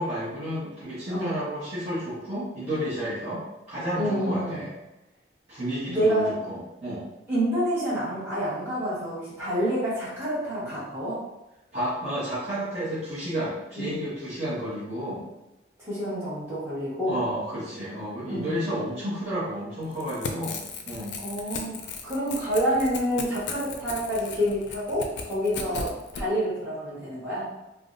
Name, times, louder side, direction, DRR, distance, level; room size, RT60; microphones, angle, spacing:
voice 1, 0.0-4.7 5.5-7.1 11.7-15.2 17.0-21.2, equal, 35° right, -12 dB, 0.9 m, -31 dB
voice 2, 1.1-1.4 4.0-4.6 5.9-6.4 7.3-11.2 13.8-14.0 15.9-17.2 18.3-18.6 21.2-27.5, equal, 15° right, -11 dB, 1.2 m, -28 dB
Crackle / Tearing, 19.9-26.2, left 5 dB, 75° left, 0.4 m, -36 dB
3.4 x 2.1 x 2.5 m, 0.97 s
head